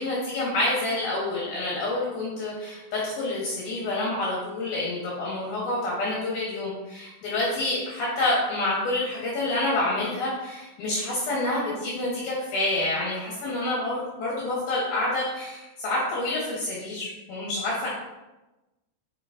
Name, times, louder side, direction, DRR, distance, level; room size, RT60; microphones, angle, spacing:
voice 1, 0.0-17.9, left 2 dB, 70° left, -5 dB, 2.4 m, -28 dB
8.5 x 4.9 x 2.6 m, 1.0 s
omnidirectional pair, 5.9 m